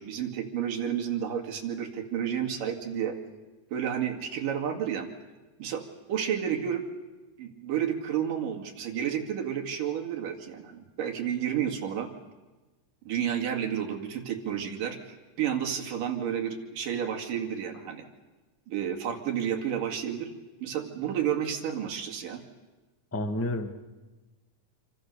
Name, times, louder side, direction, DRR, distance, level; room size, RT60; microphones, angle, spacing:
voice 1, 0.0-3.2 3.7-5.1 5.6-5.8 6.1-6.8 7.4-12.1 13.1-18.1 18.7-20.3 20.6-22.4, right 9 dB, 80° right, 2 dB, 3.9 m, -31 dB
voice 2, 23.1-23.8, left 1 dB, 10° left, 6 dB, 0.6 m, -30 dB
27.5 x 25.0 x 6.8 m, 1.2 s
omnidirectional pair, 3.8 m